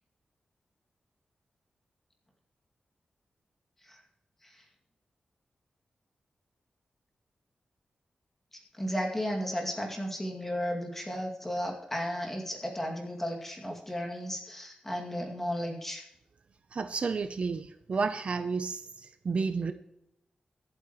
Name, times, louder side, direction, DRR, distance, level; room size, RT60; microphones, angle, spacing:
voice 1, 8.5-16.0, equal, 10° left, 2.3 m, -34 dB
voice 2, 16.7-19.7, right 4 dB, 50° right, 0.6 m, -31 dB
23.5 x 8.5 x 3.1 m
wide cardioid pair, 165°, 3 cm